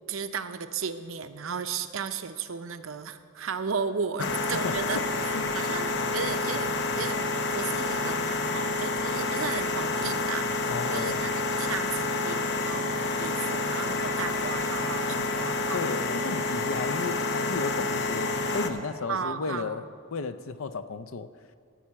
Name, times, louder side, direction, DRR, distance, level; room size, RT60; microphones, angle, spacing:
voice 1, 0.1-5.0 5.5-15.8 19.1-19.8, right 6 dB, 85° right, 10 dB, 0.6 m, -35 dB
sound 1, 4.2-18.7, left 3 dB, 55° left, 0.9 m, -29 dB
voice 2, 10.7-11.3 15.1-15.3 15.7-19.9 20.1-21.3, left 4 dB, 90° left, 13 dB, 0.5 m, -33 dB
13.5 x 5.6 x 8.6 m, 2.4 s
head